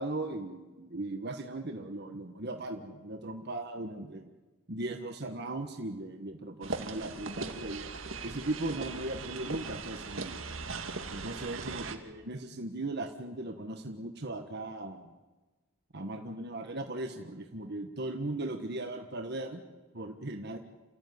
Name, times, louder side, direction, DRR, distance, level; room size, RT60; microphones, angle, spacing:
voice 1, 0.0-4.3 4.7-7.9 8.2-10.4 11.1-15.1 15.9-19.6 19.9-20.6, right 2 dB, 55° right, 5 dB, 1.5 m, -38 dB
sound 1, 6.6-12.0, right 4 dB, 80° right, 2.0 m, -39 dB
28.5 x 14.5 x 9.5 m, 1.2 s
head